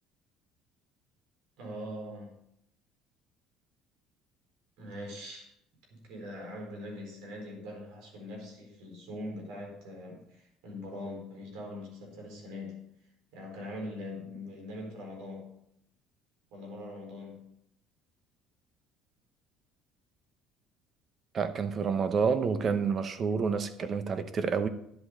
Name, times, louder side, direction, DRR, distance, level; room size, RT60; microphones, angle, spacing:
voice 1, 1.6-2.4 4.8-5.5 5.9-12.8 13.3-15.5 16.5-17.5, left 1 dB, 85° right, 4.2 m, -42 dB
voice 2, 21.3-24.7, right 5 dB, 35° right, 0.9 m, -29 dB
11.0 x 8.0 x 4.9 m
cardioid pair, 145°, 0 cm